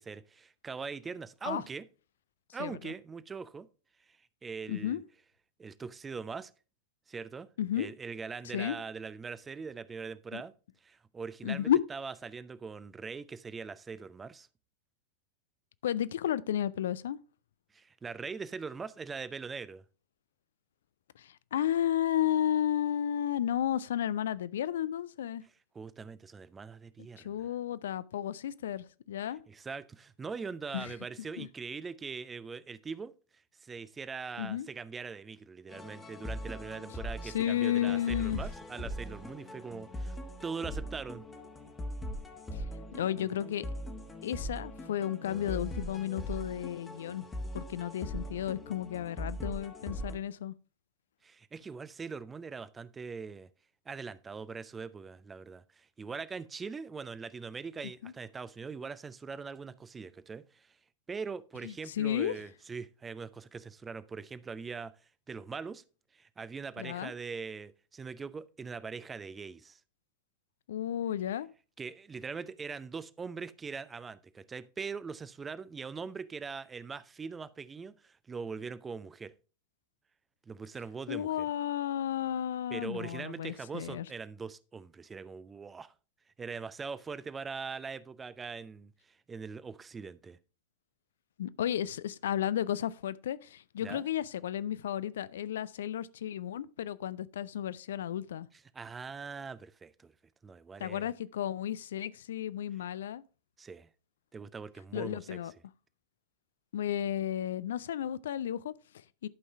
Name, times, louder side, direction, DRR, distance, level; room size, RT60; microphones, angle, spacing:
voice 1, 0.0-1.8 2.5-3.7 4.4-5.0 5.6-6.5 7.1-7.5 7.7-10.5 10.8-14.5 17.7-19.8 25.7-27.5 29.5-33.1 33.6-41.2 51.2-53.5 53.9-60.7 61.1-64.9 65.3-65.8 66.1-69.8 71.8-79.3 80.5-81.5 82.7-85.9 86.4-90.4 93.8-94.0 98.7-100.1 100.4-101.1 103.6-103.9 104.3-105.4, right 5 dB, 15° right, 0.5 m, -42 dB
voice 2, 2.6-2.9 4.7-5.0 7.6-7.9 8.5-8.8 10.3-10.4 11.4-11.8 15.8-17.2 21.2-25.4 27.2-29.4 30.7-30.9 31.4-31.5 34.4-34.7 37.2-38.4 42.5-42.6 42.9-43.7 44.2-47.3 47.5-50.5 58.0-58.1 61.6-62.4 66.8-67.1 70.7-71.5 81.1-84.1 91.4-98.5 100.8-103.2 104.9-105.5 106.7-109.3, left 10 dB, 60° left, 0.4 m, -33 dB
sound 1, 35.7-50.2, equal, 15° left, 1.2 m, -41 dB
11.0 x 5.4 x 3.5 m
figure-of-eight pair, 90°, 0 cm